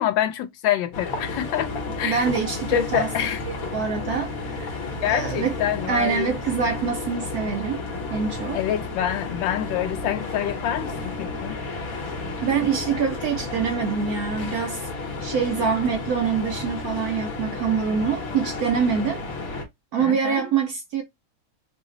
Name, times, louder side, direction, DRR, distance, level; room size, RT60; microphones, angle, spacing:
voice 1, 0.0-1.7 2.0-2.2 2.7-3.4 5.0-6.4 8.5-11.5 20.0-20.4, left 11 dB, 80° left, 1.3 m, -26 dB
sound 1, 0.9-19.6, left 3 dB, 55° left, 1.1 m, -32 dB
voice 2, 2.0-3.1 3.5-5.5 5.8-7.8 8.1-8.6 12.4-14.9 15.2-19.2 19.9-21.0, right 6 dB, 70° right, 0.9 m, -25 dB
3.2 x 2.0 x 3.7 m
omnidirectional pair, 2.1 m